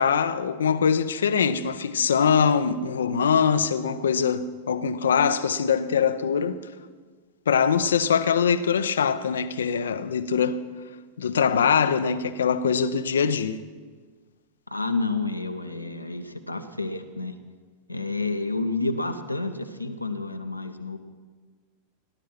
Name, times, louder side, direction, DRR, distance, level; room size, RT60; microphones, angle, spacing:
voice 1, 0.0-6.6 7.5-10.6 11.2-13.6, left 6 dB, 65° left, 0.6 m, -23 dB
voice 2, 14.7-17.3 17.9-21.0, left 3 dB, 85° left, 0.9 m, -29 dB
17.5 x 11.5 x 5.7 m
figure-of-eight pair, 90°, 0 cm